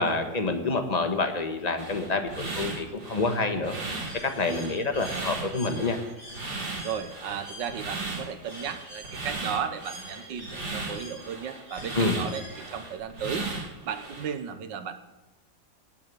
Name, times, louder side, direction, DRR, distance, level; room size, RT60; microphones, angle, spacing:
voice 1, 0.0-3.8 4.2-6.0 11.9-12.2, left 3 dB, 25° left, 6 dB, 1.4 m, -27 dB
sound 1, 1.8-14.3, right 3 dB, 65° right, 4.0 m, -36 dB
Bird, 4.0-13.0, left 1 dB, 45° right, 7.7 m, -47 dB
voice 2, 4.4-4.8 6.8-13.5 13.8-15.0, right 7 dB, 80° right, 10 dB, 1.7 m, -35 dB
17.5 x 7.5 x 9.7 m, 1.1 s
omnidirectional pair, 1.9 m